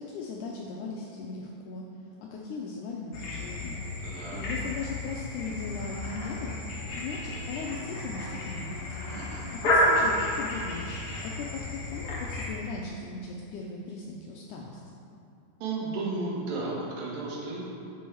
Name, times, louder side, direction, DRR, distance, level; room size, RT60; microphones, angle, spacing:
voice 1, 0.0-1.8 2.3-3.8 4.3-6.5 6.9-9.0 9.5-11.0 11.4-15.0, left 4 dB, 80° left, -1 dB, 1.8 m, -38 dB
sound 1, 3.1-12.5, left 1 dB, 55° left, 1.7 m, -31 dB
voice 2, 4.0-4.4 9.1-9.5 15.6-17.6, right 3 dB, 80° right, -4 dB, 3.0 m, -34 dB
8.2 x 5.4 x 4.6 m, 2.6 s
omnidirectional pair, 4.1 m